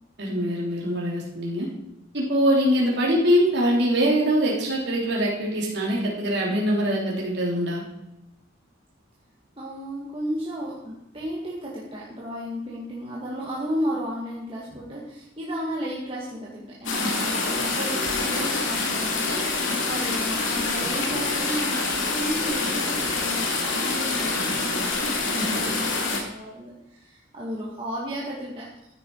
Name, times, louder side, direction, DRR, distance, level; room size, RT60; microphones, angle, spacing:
voice 1, 0.2-1.7 2.1-7.8 17.0-17.1 25.4-25.6, equal, 55° right, -3 dB, 3.3 m, -23 dB
voice 2, 9.6-28.7, equal, 25° right, -5 dB, 2.2 m, -33 dB
sound 1, 16.9-26.2, left 3 dB, 70° left, 2.8 m, -26 dB
15.0 x 9.7 x 4.8 m, 0.88 s
head